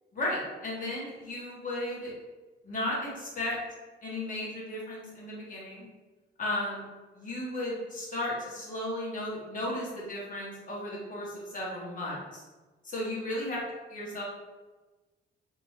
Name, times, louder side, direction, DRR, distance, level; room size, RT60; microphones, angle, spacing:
voice 1, 0.1-2.1 2.6-3.6 4.0-5.9 6.4-6.8 7.1-12.4 12.8-13.6 13.9-14.2, left 1 dB, 40° left, -5 dB, 1.3 m, -35 dB
2.9 x 2.6 x 3.2 m, 1.2 s
cardioid pair, 90°, 20 cm